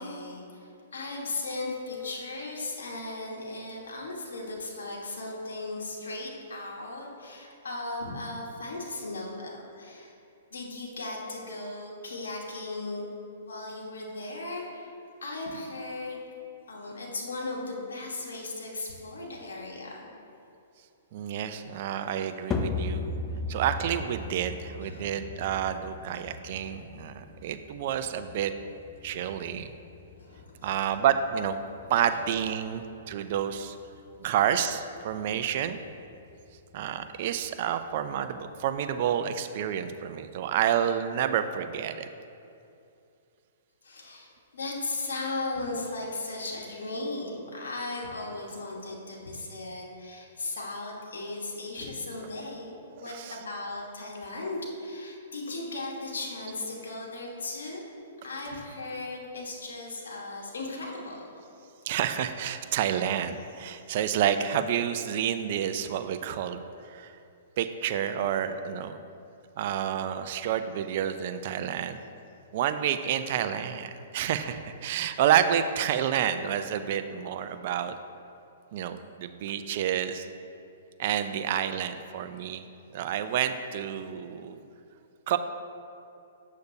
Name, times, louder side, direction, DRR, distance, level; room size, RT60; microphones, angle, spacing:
voice 1, 0.0-10.1 10.5-13.1 13.4-14.9 15.2-16.2 16.7-20.1 21.9-22.0 24.8-25.2 26.5-26.8 30.1-30.7 31.8-31.9 33.2-33.3 35.1-35.2 43.8-57.8 58.2-61.3, left 2 dB, 85° left, -2 dB, 1.3 m, -37 dB
voice 2, 21.1-23.0 23.5-28.5 29.0-29.7 30.6-31.6 31.9-33.8 34.2-35.8 36.7-42.1 53.0-53.4 61.9-66.6 66.9-67.1 67.6-69.0 69.6-72.0 72.5-78.0 78.7-80.3 81.0-82.6 82.9-84.6 85.3-85.4, right 9 dB, 50° right, 9 dB, 0.4 m, -29 dB
sound 1, 22.5-38.9, left 3 dB, 20° left, 0.5 m, -39 dB
8.1 x 6.5 x 2.7 m, 2.7 s
hypercardioid pair, 140°, 0 cm